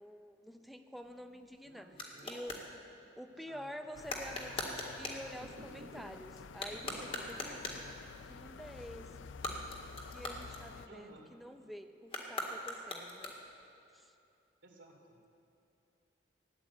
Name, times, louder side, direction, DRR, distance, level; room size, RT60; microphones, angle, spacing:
voice 1, 0.0-1.9 2.2-2.6 3.2-7.9 8.2-9.1 10.1-13.3 13.9-14.1, equal, ahead, 6 dB, 0.6 m, -48 dB
sound 1, 0.9-2.7 4.0-5.3 6.5-7.9 9.3-11.1 12.0-13.7, left 1 dB, 30° left, 1.8 m, -42 dB
voice 2, 1.6-2.4 3.3-3.7 10.9-11.3 14.6-15.2, right 1 dB, 80° right, -1 dB, 2.8 m, -57 dB
sound 2, 3.9-10.9, left 5 dB, 80° left, 0.5 m, -50 dB
sound 3, 5.4-6.3 6.6-7.4 7.8-7.9 8.3-8.4 8.9-10.4 10.7-11.3, right 1 dB, 50° right, 1.1 m, -55 dB
16.0 x 10.5 x 8.1 m, 2.7 s
head